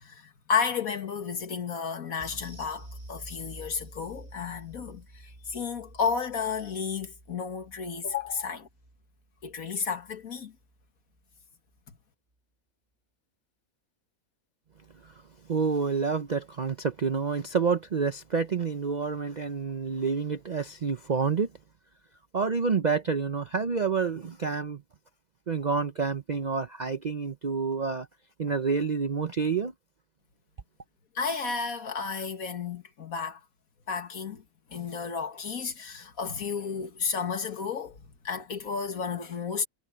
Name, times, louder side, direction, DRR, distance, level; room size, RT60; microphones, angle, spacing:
voice 1, 0.0-8.7 9.4-10.5 31.2-33.4 33.9-34.4 34.7-39.7, left 6 dB, 65° left, 2.1 m, -32 dB
sound 1, 2.2-10.9 11.1-11.4 11.8-11.9, right 1 dB, 25° right, 2.3 m, -49 dB
voice 2, 15.5-21.5 22.3-24.8 25.5-28.1 28.4-29.7, right 5 dB, 45° right, 0.5 m, -28 dB
omnidirectional pair, 1.6 m